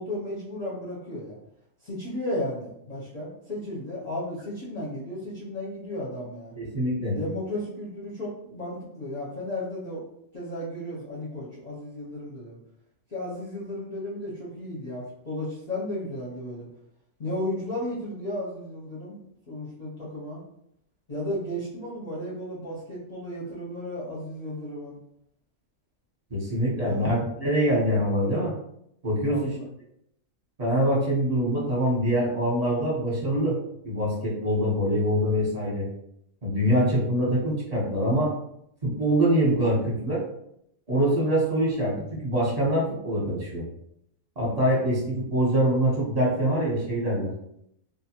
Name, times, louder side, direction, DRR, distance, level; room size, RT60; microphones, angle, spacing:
voice 1, 0.0-1.4 1.8-6.5 7.1-10.0 10.3-12.6 13.1-16.7 17.2-20.4 21.1-25.0 26.8-27.0 29.2-29.6, left 1 dB, 45° left, -8 dB, 0.6 m, -34 dB
voice 2, 6.6-7.2 26.3-28.5 29.0-29.5 30.6-33.6 33.8-35.9 36.4-38.3 38.8-40.2 40.9-43.6 44.4-47.3, equal, 35° right, -5 dB, 0.9 m, -24 dB
2.5 x 2.2 x 2.8 m, 0.75 s
omnidirectional pair, 1.5 m